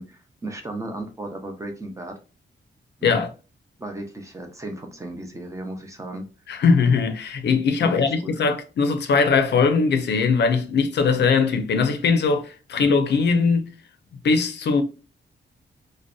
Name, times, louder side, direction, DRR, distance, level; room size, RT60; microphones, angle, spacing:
voice 1, 0.0-2.2 3.0-3.2 3.8-6.6 7.8-8.3 12.8-12.9, right 1 dB, 15° right, 0.5 m, -35 dB
voice 2, 6.5-13.7 14.2-14.8, left 5 dB, 65° left, 0.5 m, -20 dB
2.6 x 2.1 x 2.3 m
wide cardioid pair, 165°, 19 cm